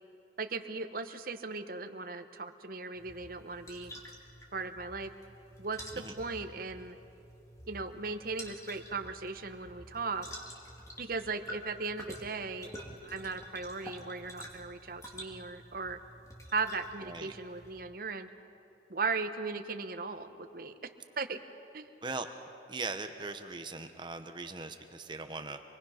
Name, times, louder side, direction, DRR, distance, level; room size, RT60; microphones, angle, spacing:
voice 1, 0.4-3.9 4.5-5.1 5.6-7.0 7.7-10.3 11.0-12.7 13.0-16.0 16.5-18.3 18.9-20.7 21.2-21.4 21.7-21.9, right 4 dB, 50° right, 9 dB, 1.0 m, -37 dB
sound 1, 2.9-17.8, equal, 15° left, 2.5 m, -49 dB
voice 2, 22.7-25.6, right 3 dB, 25° right, 7 dB, 1.0 m, -40 dB
27.0 x 21.0 x 5.8 m, 2.8 s
head